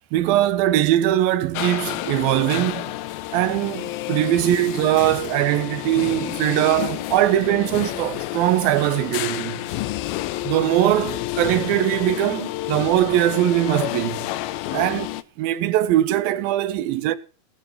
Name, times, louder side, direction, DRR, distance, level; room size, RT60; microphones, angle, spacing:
voice 1, 0.1-2.9 3.3-9.6 10.4-14.3 14.7-17.2, right 13 dB, 80° right, 2.7 m, -21 dB
sound 1, 1.6-15.2, left 16 dB, 85° left, 2.6 m, -30 dB
21.5 x 9.3 x 3.2 m
omnidirectional pair, 4.2 m